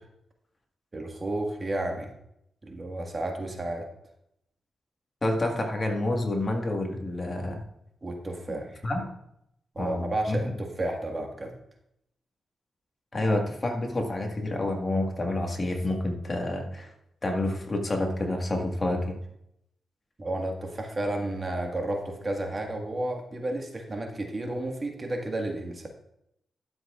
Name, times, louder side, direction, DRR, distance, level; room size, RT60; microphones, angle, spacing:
voice 1, 0.9-2.1 2.6-3.9 8.0-8.8 9.7-11.5 20.2-25.9, right 1 dB, 30° right, 2 dB, 1.7 m, -32 dB
voice 2, 5.2-7.6 8.8-9.0 9.8-10.4 13.1-16.9 17.2-19.1, left 1 dB, 35° left, 2 dB, 1.7 m, -28 dB
12.5 x 7.4 x 2.5 m, 0.77 s
cardioid pair, 80°, 0 cm